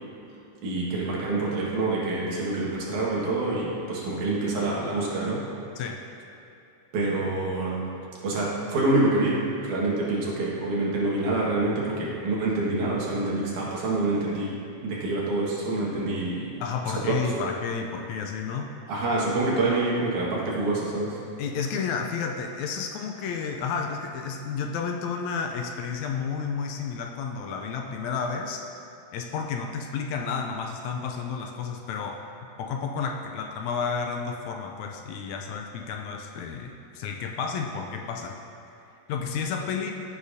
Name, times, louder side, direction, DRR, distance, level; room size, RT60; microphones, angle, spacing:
voice 1, 0.6-5.4 6.9-7.8 8.2-14.6 14.8-16.5 16.9-17.4 18.9-21.2, right 2 dB, 80° right, -5 dB, 3.2 m, -26 dB
voice 2, 16.6-18.7 21.4-28.6 29.1-32.2 32.6-38.4 39.1-39.9, left 5 dB, 80° left, 3 dB, 1.9 m, -31 dB
15.0 x 8.2 x 2.7 m, 2.7 s
omnidirectional pair, 3.5 m